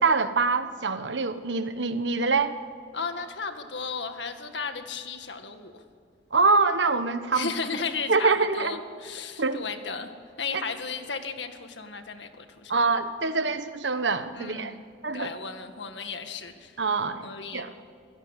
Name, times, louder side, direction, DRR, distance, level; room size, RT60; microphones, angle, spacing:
voice 1, 0.0-2.6 6.3-7.5 8.1-8.8 9.4-9.6 10.5-10.6 12.7-14.7 15.0-15.3 16.8-17.7, right 4 dB, 75° right, 10 dB, 1.3 m, -25 dB
voice 2, 2.9-5.8 7.3-10.1 10.4-12.8 14.3-14.9 15.1-16.8 17.2-17.7, left 5 dB, 70° left, 7 dB, 2.0 m, -35 dB
27.0 x 17.0 x 10.0 m, 2.2 s
head